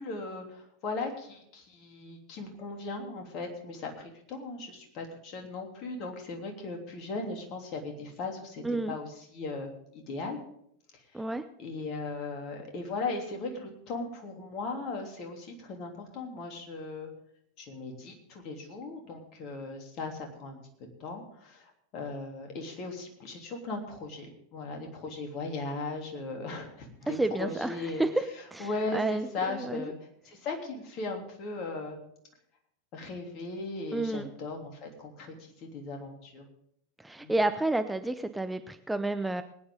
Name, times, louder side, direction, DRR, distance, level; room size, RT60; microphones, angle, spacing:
voice 1, 0.0-10.4 10.9-11.2 11.6-17.1 17.6-20.6 21.0-28.0 28.6-29.9 30.2-32.0 32.9-36.5 37.2-37.4, left 3 dB, 40° left, 3 dB, 3.2 m, -38 dB
voice 2, 11.1-11.5 27.1-28.2 28.5-29.8 33.9-34.3 37.0-39.4, right 2 dB, 5° right, 9 dB, 0.7 m, -30 dB
21.0 x 9.6 x 3.8 m, 0.71 s
figure-of-eight pair, 85°, 0 cm